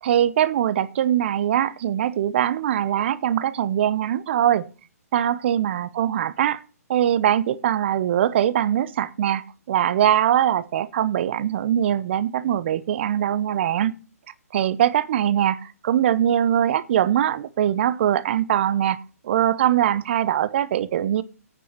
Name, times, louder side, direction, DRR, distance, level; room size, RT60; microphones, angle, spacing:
voice 1, 0.0-4.7 5.1-6.6 6.9-13.9 14.5-21.2, right 10 dB, 45° right, 0.9 m, -22 dB
9.0 x 7.0 x 8.1 m
hypercardioid pair, 140°, 8 cm